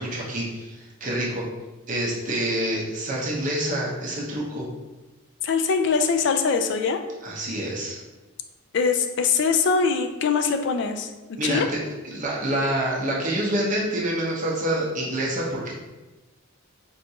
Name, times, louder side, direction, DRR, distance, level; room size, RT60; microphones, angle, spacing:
voice 1, 0.0-1.5 1.9-4.7 7.2-8.0 11.4-15.7, right 1 dB, 35° right, -4 dB, 0.7 m, -27 dB
voice 2, 5.4-7.0 8.7-11.7, left 5 dB, 55° left, 6 dB, 0.3 m, -23 dB
4.5 x 2.6 x 2.7 m, 1.1 s
head